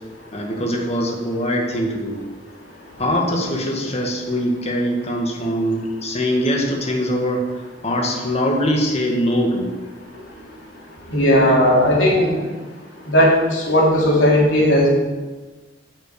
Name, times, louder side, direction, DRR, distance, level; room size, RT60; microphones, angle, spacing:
voice 1, 0.3-2.2 3.0-9.7, equal, 35° left, 0 dB, 1.9 m, -22 dB
voice 2, 11.1-12.3 13.1-14.9, equal, 85° left, -4 dB, 3.4 m, -15 dB
8.9 x 6.4 x 7.0 m, 1.3 s
head